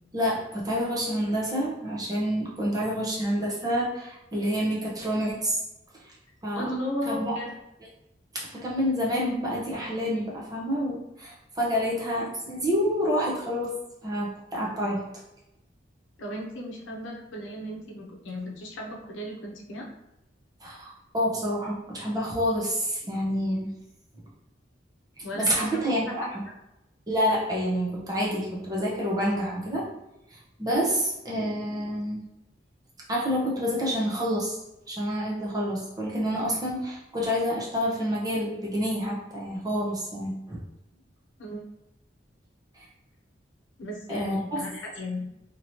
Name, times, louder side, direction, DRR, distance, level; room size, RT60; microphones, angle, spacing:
voice 1, 0.1-5.6 6.4-6.7 7.1-7.4 8.3-13.7 14.0-15.1 20.6-23.7 25.2-26.4 27.1-29.9 30.3-32.2 33.1-34.6 34.9-40.6 42.8-42.9 44.1-44.6, equal, 20° right, -5 dB, 0.7 m, -28 dB
voice 2, 6.5-7.6 16.2-19.9 25.2-26.1 41.4-41.6 43.8-45.3, left 1 dB, 85° left, -1 dB, 0.7 m, -35 dB
3.0 x 2.9 x 2.7 m, 0.91 s
head